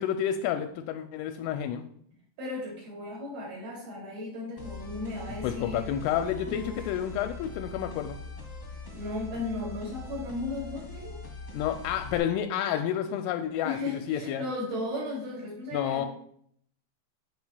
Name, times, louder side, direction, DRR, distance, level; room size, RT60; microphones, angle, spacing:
voice 1, 0.0-1.8 5.4-8.2 11.5-14.4 15.7-16.1, left 10 dB, 85° left, 7 dB, 2.9 m, -30 dB
voice 2, 2.4-5.8 6.5-6.8 8.9-11.2 13.6-16.1, left 2 dB, 50° right, -4 dB, 3.6 m, -35 dB
sound 1, 4.6-12.2, left 3 dB, 45° left, 1.5 m, -42 dB
10.5 x 7.7 x 2.2 m, 0.65 s
omnidirectional pair, 5.9 m